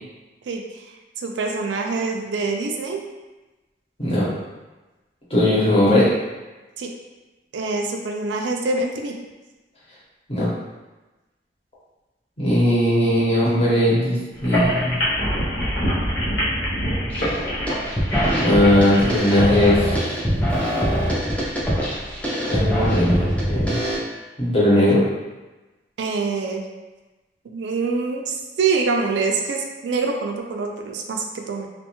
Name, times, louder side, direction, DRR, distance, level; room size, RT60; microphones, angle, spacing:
voice 1, 1.2-3.0 6.8-6.9 7.5-9.2 24.9-25.0 26.0-26.6 27.5-31.7, right 4 dB, 85° right, 2 dB, 0.4 m, -25 dB
voice 2, 5.3-6.1 10.3-10.4 12.4-15.0 18.4-20.0 22.5-23.7 24.4-25.0, left 1 dB, 30° left, -8 dB, 0.9 m, -18 dB
sound 1, 14.4-19.8, equal, 85° left, 0.8 m, -25 dB
sound 2, 17.1-17.4 17.7-24.0, equal, 10° left, 0.5 m, -23 dB
2.4 x 2.3 x 2.9 m, 1.1 s
head